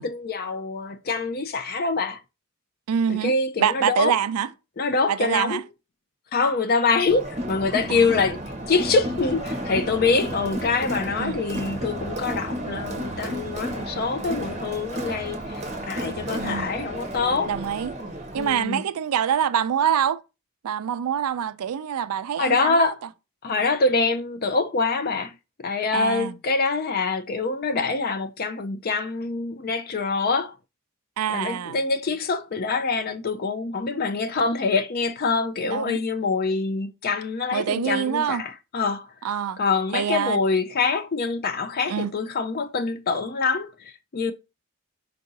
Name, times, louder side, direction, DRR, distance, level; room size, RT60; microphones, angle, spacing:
voice 1, 0.0-2.2 3.1-4.1 4.8-5.6 6.3-8.4 8.7-17.5 18.4-18.8 22.4-23.0 23.4-25.3 25.6-30.5 31.3-39.1 39.6-44.3, left 4 dB, 45° left, 0.4 m, -25 dB
voice 2, 2.9-3.3 3.6-4.5 5.1-5.6 7.9-8.1 11.1-11.4 16.4-16.7 17.4-18.0 18.3-20.2 20.6-22.9 25.9-26.4 31.2-31.8 35.6-36.0 37.5-38.4 39.2-39.6 39.9-40.4 41.9-42.1, right 8 dB, 85° right, 0.4 m, -25 dB
Crowd, 7.1-18.6, right 1 dB, 30° right, 0.7 m, -32 dB
4.6 x 2.6 x 3.9 m
head